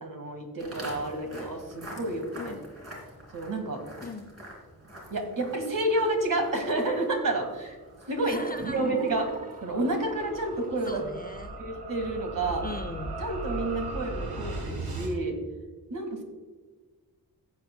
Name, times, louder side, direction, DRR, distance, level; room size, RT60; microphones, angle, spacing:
voice 1, 0.0-2.5 3.3-3.8 5.1-7.8 8.1-9.3 9.6-11.0 11.6-12.6 13.2-15.4 15.9-16.2, right 2 dB, 60° right, 4 dB, 1.9 m, -30 dB
Walk footsteps, 0.6-9.8, equal, 40° right, 2.9 m, -46 dB
voice 2, 2.3-2.7 4.0-4.3 8.2-8.9 10.9-11.6 12.6-13.2, left 2 dB, 25° left, 8 dB, 0.5 m, -39 dB
sound 1, 7.5-15.1, right 2 dB, 80° right, 1.7 m, -38 dB
sound 2, 8.4-11.1, right 1 dB, 25° right, 0.8 m, -41 dB
15.0 x 8.7 x 2.2 m, 1.4 s
wide cardioid pair, 155°, 37 cm